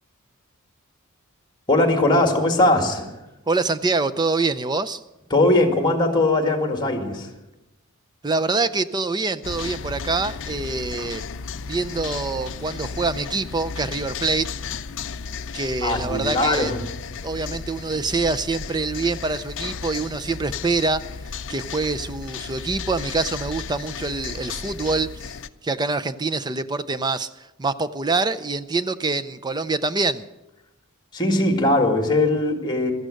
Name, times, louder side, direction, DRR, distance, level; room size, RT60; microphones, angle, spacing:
voice 1, 1.7-3.1 5.3-7.3 15.8-16.8 31.1-32.9, left 2 dB, 20° left, 4 dB, 2.0 m, -20 dB
voice 2, 3.5-5.0 8.2-11.2 11.7-14.5 15.5-16.7 17.2-21.0 21.5-25.4 25.6-30.3, right 3 dB, 20° right, 14 dB, 0.5 m, -25 dB
sound 1, 9.4-25.5, left 5 dB, 55° left, 0.5 m, -34 dB
15.5 x 13.5 x 6.4 m, 0.98 s
head